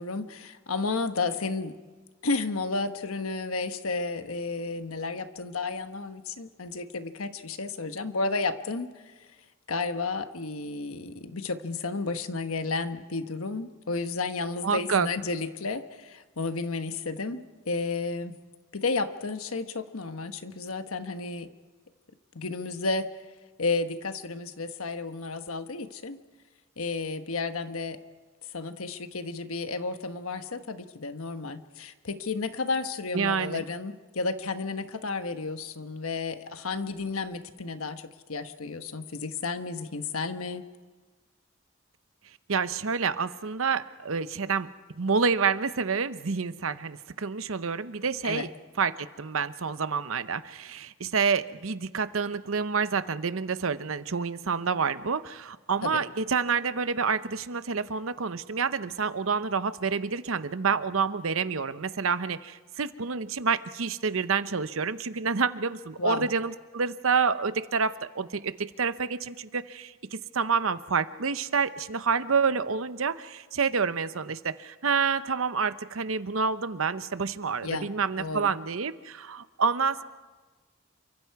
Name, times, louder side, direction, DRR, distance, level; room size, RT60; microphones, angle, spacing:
voice 1, 0.0-1.8 2.2-9.1 9.7-18.4 18.7-21.5 22.3-23.1 23.6-26.2 26.8-28.0 28.5-40.6 48.2-48.5 55.8-56.0 66.0-66.3 77.6-77.9 78.2-78.5, left 3 dB, 80° left, 9 dB, 1.2 m, -32 dB
voice 2, 14.6-15.1 33.1-33.6 42.5-44.7 45.0-48.5 48.8-80.0, right 5 dB, 70° right, 13 dB, 0.8 m, -28 dB
28.5 x 24.5 x 4.7 m, 1.3 s
head